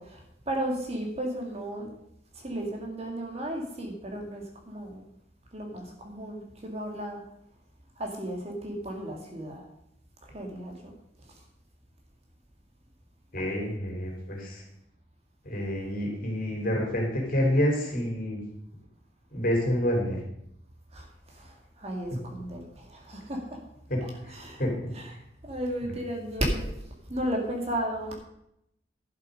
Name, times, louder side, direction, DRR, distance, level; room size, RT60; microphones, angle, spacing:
voice 1, 0.0-1.9 2.4-5.0 5.5-7.2 8.0-9.6 10.3-10.9 20.9-23.6 24.3-24.6 25.4-26.7 27.1-28.1, right 1 dB, 30° right, 1 dB, 1.9 m, -34 dB
voice 2, 13.3-14.6 15.4-18.4 19.3-20.2 23.9-24.9 25.8-26.0, equal, 45° left, 0 dB, 3.2 m, -28 dB
11.5 x 7.5 x 5.2 m, 0.78 s
head